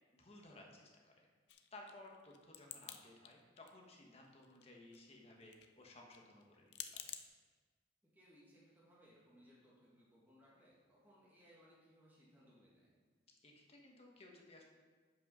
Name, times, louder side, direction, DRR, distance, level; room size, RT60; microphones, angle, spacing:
voice 1, 0.1-1.2 1.7-6.4 6.9-7.1 13.4-14.6, left 2 dB, 35° left, 0 dB, 1.2 m, -58 dB
sound 1, 1.5-3.0 3.3-4.0 4.2-7.3, left 10 dB, 65° left, 0.5 m, -50 dB
voice 2, 8.1-12.9, equal, 10° right, -7 dB, 1.7 m, -66 dB
7.4 x 5.6 x 5.4 m, 1.4 s
head